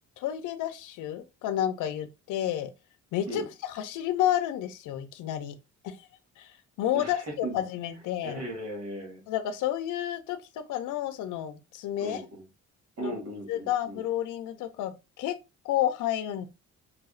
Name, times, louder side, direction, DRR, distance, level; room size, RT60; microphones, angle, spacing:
voice 1, 0.2-2.7 3.1-3.4 3.7-5.6 5.8-6.1 6.4-6.5 6.8-8.4 9.3-12.2 13.0-13.2 13.5-15.4 15.6-16.5, left 11 dB, 85° left, 0.6 m, -30 dB
voice 2, 6.9-7.6 8.2-9.2 12.0-12.5 13.0-14.0, right 1 dB, 55° right, 2.1 m, -37 dB
4.8 x 2.8 x 2.4 m
cardioid pair, 90°, 30 cm